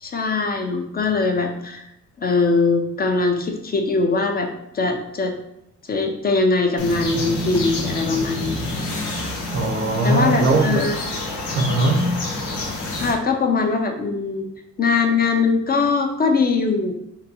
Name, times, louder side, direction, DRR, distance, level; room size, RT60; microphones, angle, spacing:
voice 1, 0.0-1.9 2.2-4.5 4.7-5.3 5.9-8.7 10.0-10.9 13.0-14.5 14.8-16.9, left 4 dB, 30° left, 0.4 m, -21 dB
sound 1, 6.8-13.1, left 2 dB, 85° left, 1.0 m, -28 dB
voice 2, 9.5-11.0 11.5-12.2, right 2 dB, 45° right, 0.5 m, -20 dB
3.8 x 2.2 x 2.8 m
cardioid pair, 90°, 30 cm